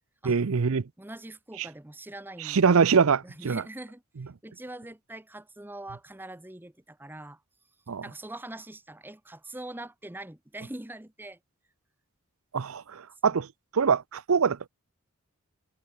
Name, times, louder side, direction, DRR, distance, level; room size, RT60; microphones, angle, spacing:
voice 1, 0.2-0.9 1.6-1.7 2.4-3.6 7.9-8.0 12.5-13.5 13.7-14.7, right 5 dB, 75° right, 0.6 m, -24 dB
voice 2, 1.0-2.6 3.2-4.0 4.4-7.4 8.0-11.4 13.2-13.4, right 1 dB, 10° right, 0.8 m, -43 dB
head